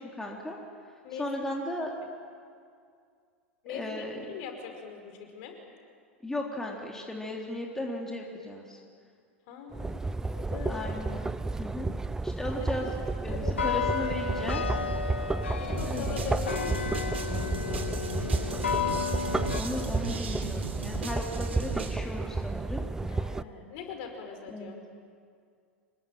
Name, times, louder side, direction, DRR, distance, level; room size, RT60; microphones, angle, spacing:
voice 1, 0.2-0.6 1.2-1.9 3.7-4.3 6.2-8.8 10.7-11.3 11.6-11.9 12.2-12.9 13.2-14.8 15.8-16.3 19.5-22.9 24.5-24.8, left 1 dB, 5° left, -1 dB, 3.4 m, -36 dB
voice 2, 1.0-1.5 1.9-2.0 3.6-5.6 9.5-10.9 12.8-12.9 13.3-13.7 15.6-17.9 23.1-24.7, left 6 dB, 50° left, 4 dB, 5.2 m, -41 dB
sound 1, 9.7-23.4, right 3 dB, 10° right, 0.6 m, -32 dB
sound 2, 13.3-19.6, left 6 dB, 75° left, 1.7 m, -32 dB
sound 3, 15.8-22.0, right 4 dB, 75° right, 3.0 m, -40 dB
26.5 x 22.0 x 9.2 m, 2.2 s
figure-of-eight pair, 90°, 7 cm